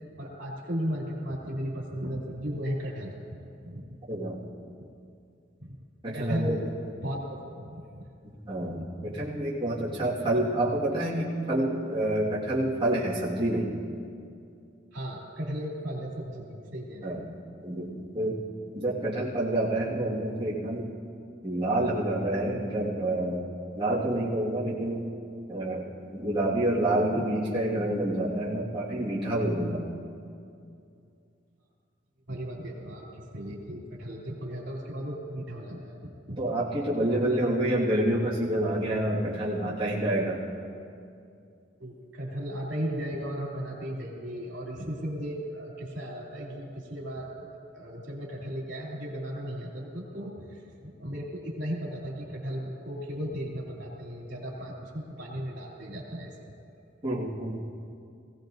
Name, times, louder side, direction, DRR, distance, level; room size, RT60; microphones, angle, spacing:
voice 1, 0.2-4.0 5.6-5.8 6.1-6.7 7.0-7.2 7.6-8.1 14.9-17.2 27.1-27.2 32.3-36.5 37.1-37.2 41.8-47.5 47.7-56.5, equal, 70° right, -3 dB, 2.9 m, -36 dB
voice 2, 4.1-4.4 6.0-6.6 8.5-13.7 17.0-17.2 17.6-18.4 18.8-20.9 21.4-23.4 23.8-25.0 25.5-29.8 36.4-40.4 57.0-57.6, right 1 dB, 25° right, -8 dB, 1.8 m, -28 dB
20.5 x 16.5 x 2.6 m, 2.5 s
head